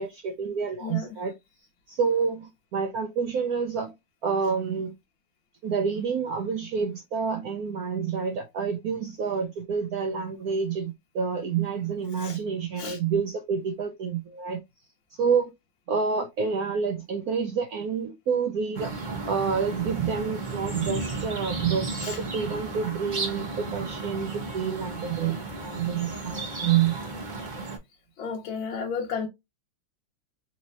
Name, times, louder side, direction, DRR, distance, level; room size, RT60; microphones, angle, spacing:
voice 1, 0.0-1.3 1.9-3.9 4.2-4.9 5.6-14.6 15.2-15.5 15.9-18.9 19.3-27.0, right 6 dB, 75° right, 0.8 m, -28 dB
voice 2, 0.8-1.2 12.2-12.4 12.8-13.0 21.9-22.2 26.3-26.4 28.2-29.3, left 5 dB, 75° left, 1.5 m, -33 dB
sound 1, 18.7-27.8, right 3 dB, 30° right, 0.9 m, -34 dB
4.2 x 3.0 x 2.6 m
omnidirectional pair, 2.2 m